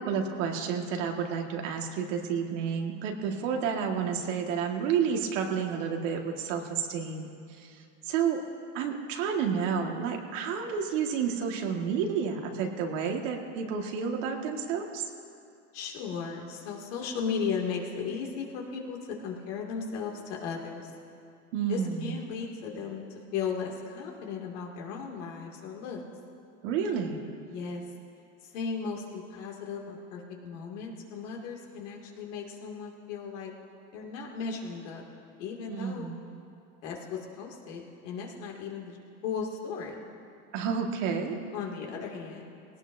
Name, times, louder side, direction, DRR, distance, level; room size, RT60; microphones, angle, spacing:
voice 1, 0.0-7.8 8.0-8.4 8.7-15.1 21.5-22.2 26.6-27.2 35.7-36.2 40.5-41.4, right 6 dB, 75° right, 2 dB, 1.8 m, -30 dB
voice 2, 15.7-20.9 21.7-26.0 27.4-27.8 28.4-33.5 33.9-35.1 35.4-36.1 36.8-39.0 39.2-40.0 41.5-42.5, left 5 dB, 75° left, -1 dB, 2.4 m, -36 dB
20.0 x 17.5 x 2.7 m, 2.5 s
supercardioid pair, 115°, 37 cm